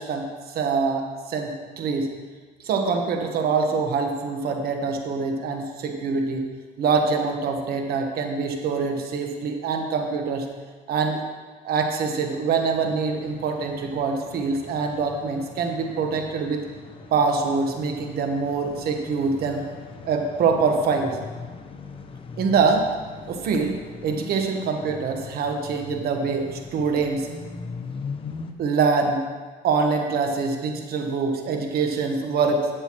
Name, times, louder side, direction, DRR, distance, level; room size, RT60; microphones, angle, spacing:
voice 1, 0.0-2.1 2.6-6.4 6.8-10.5 10.9-11.2 11.6-16.6 17.1-19.7 20.0-21.2 22.4-22.9 23.3-23.8 24.0-27.3 28.6-29.2 29.6-32.7, right 4 dB, 65° right, 3 dB, 1.3 m, -24 dB
sound 1, 12.6-28.5, left 4 dB, 30° left, 0.8 m, -41 dB
11.0 x 8.0 x 3.1 m, 1.4 s
cardioid pair, 110°, 17 cm